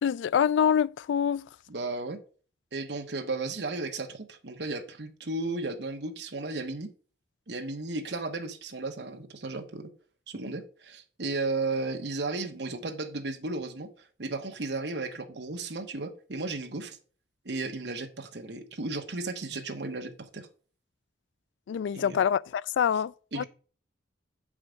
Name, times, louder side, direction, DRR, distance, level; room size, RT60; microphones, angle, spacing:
voice 1, 0.0-1.5 21.7-23.4, left 8 dB, 85° left, 0.3 m, -26 dB
voice 2, 1.7-2.2 2.7-6.9 7.5-9.9 10.3-13.9 14.2-17.0 17.4-20.5 21.9-22.2 23.3-23.4, right 3 dB, 65° right, 1.1 m, -34 dB
8.0 x 4.9 x 5.0 m
head